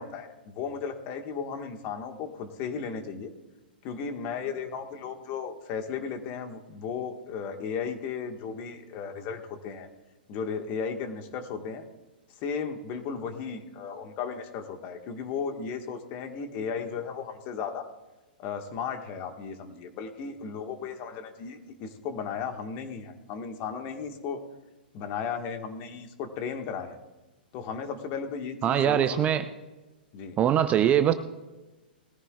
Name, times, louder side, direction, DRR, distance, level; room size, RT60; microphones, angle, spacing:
voice 1, 0.0-3.3 3.8-9.9 10.3-11.8 12.4-17.9 18.4-24.4 24.9-27.0 27.5-29.3 30.1-30.4, left 6 dB, 40° left, 6 dB, 1.7 m, -35 dB
voice 2, 28.6-29.4 30.4-31.1, right 10 dB, 25° right, 10 dB, 0.6 m, -22 dB
20.5 x 14.5 x 2.4 m, 1.1 s
figure-of-eight pair, 110°, 5 cm